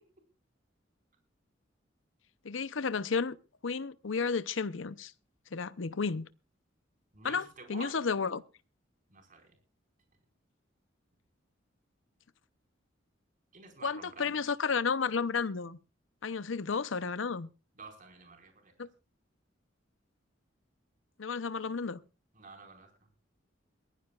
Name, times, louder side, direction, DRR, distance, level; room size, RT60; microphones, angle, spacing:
voice 1, 2.4-3.4 3.6-5.1 5.5-6.3 7.2-8.4 13.8-15.8 16.2-17.5 18.8-18.9 21.2-22.0, left 5 dB, 75° left, 0.7 m, -32 dB
voice 2, 7.1-7.9 9.1-9.6 13.5-14.3 17.8-18.9 22.3-22.9, right 4 dB, 45° right, 4.8 m, -50 dB
22.0 x 16.0 x 2.4 m
head